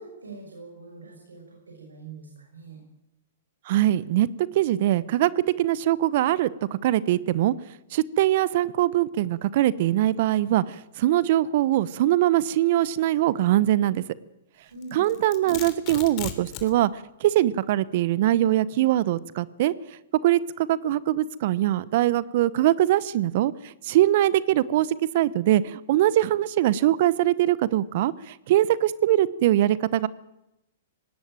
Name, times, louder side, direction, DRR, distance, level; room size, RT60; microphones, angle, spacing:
voice 1, 0.0-2.8 14.7-15.0, right 3 dB, 85° right, 0 dB, 6.1 m, -43 dB
voice 2, 3.7-4.3 4.5-6.5 6.8-7.5 7.9-14.0 14.9-19.7 20.2-24.9 25.1-30.1, right 13 dB, 55° right, 19 dB, 0.9 m, -22 dB
Domestic sounds home sounds, 14.8-16.7, left 11 dB, 40° left, 3.0 m, -37 dB
18.5 x 18.0 x 9.0 m, 0.88 s
hypercardioid pair, 115°, 0 cm